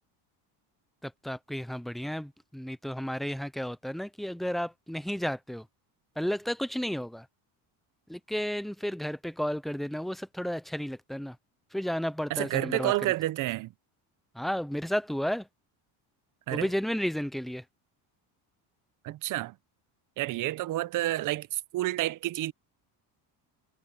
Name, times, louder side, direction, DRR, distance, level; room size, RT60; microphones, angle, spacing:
voice 1, 1.0-5.7 6.2-7.3 8.1-11.4 11.7-13.1 14.3-15.5 16.5-17.6, equal, ahead, 0.4 m, -32 dB
voice 2, 12.3-13.7 16.5-16.7 19.0-19.5 20.2-22.5, right 16 dB, 50° right, 0.8 m, -29 dB
cardioid pair, 140°, 41 cm